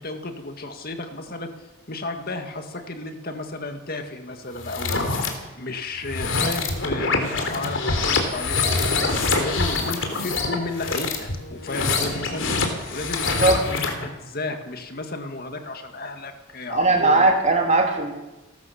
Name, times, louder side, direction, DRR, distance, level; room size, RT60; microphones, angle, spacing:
voice 1, 0.0-1.5 1.9-17.3 18.0-18.1, left 2 dB, 45° left, 6 dB, 2.0 m, -33 dB
sound 1, 4.6-5.3 6.0-14.0, left 3 dB, 65° left, 3.5 m, -25 dB
voice 2, 16.7-18.1, right 2 dB, 35° right, 3 dB, 3.3 m, -18 dB
29.5 x 12.5 x 7.1 m, 1.1 s
head